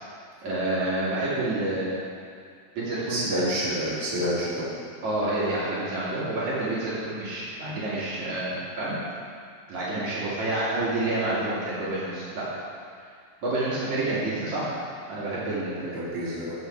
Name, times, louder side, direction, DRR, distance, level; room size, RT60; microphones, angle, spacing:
voice 1, 0.4-2.0 2.8-3.5 5.0-8.9 9.7-12.4 13.4-14.7 15.1-16.0, right 2 dB, 55° right, -10 dB, 3.8 m, -28 dB
voice 2, 3.1-4.7 15.7-16.6, equal, 30° right, -10 dB, 3.4 m, -28 dB
14.5 x 8.1 x 4.7 m, 2.3 s
omnidirectional pair, 4.0 m